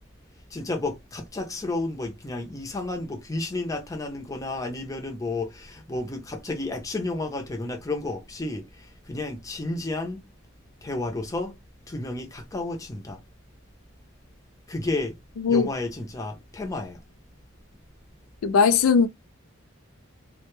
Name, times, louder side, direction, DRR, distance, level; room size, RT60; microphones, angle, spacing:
voice 1, 0.5-10.2 10.8-11.6 11.9-13.2 14.7-15.2 15.5-17.0, left 2 dB, 15° left, 0.5 m, -31 dB
voice 2, 18.4-19.1, left 5 dB, 85° left, 0.4 m, -19 dB
2.1 x 2.0 x 3.0 m
head